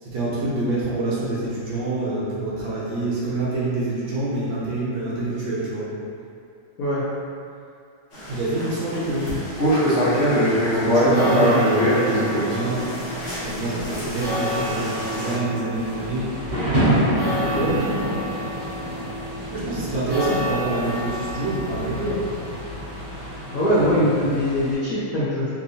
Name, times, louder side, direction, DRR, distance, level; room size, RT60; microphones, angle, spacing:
voice 1, 0.0-5.9 8.3-9.3 10.2-10.5 10.8-12.9 13.4-16.3 17.2-17.8 19.5-22.2 23.6-24.1, right 2 dB, 75° right, -8 dB, 1.6 m, -26 dB
sound 1, 8.1-15.4, equal, 50° left, 0.9 m, -23 dB
sound 2, 10.9-24.4, left 1 dB, 50° right, 1.6 m, -32 dB
Thunder / Rain, 15.7-24.7, right 1 dB, 35° right, 1.2 m, -28 dB
voice 2, 23.5-25.5, equal, 80° left, -10 dB, 0.7 m, -21 dB
3.5 x 2.7 x 2.7 m, 2.5 s
omnidirectional pair, 2.2 m